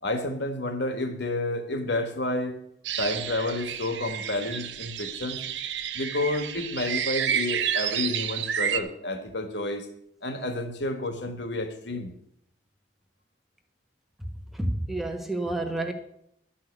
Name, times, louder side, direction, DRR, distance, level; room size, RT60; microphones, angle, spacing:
voice 1, 0.0-2.6 3.0-5.4 5.9-9.9 10.2-12.1, left 2 dB, 65° left, 7 dB, 1.7 m, -30 dB
sound 1, 2.8-8.8, right 9 dB, 70° right, 0.7 m, -30 dB
voice 2, 14.2-15.9, right 1 dB, ahead, 4 dB, 1.3 m, -30 dB
12.5 x 5.8 x 8.2 m, 0.73 s
head